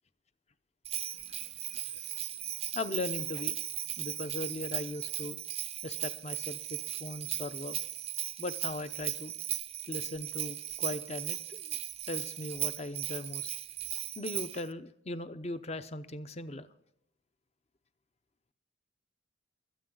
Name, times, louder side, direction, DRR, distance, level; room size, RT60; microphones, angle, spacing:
Bell, 0.8-14.7, right 12 dB, 30° right, 0.5 m, -37 dB
voice 1, 1.0-1.9 2.7-3.6 4.0-5.4 5.8-7.8 8.4-9.3 9.9-11.8 12.1-13.5 14.2-16.7, left 2 dB, 30° left, 12 dB, 0.7 m, -39 dB
24.5 x 8.8 x 3.8 m, 0.80 s
head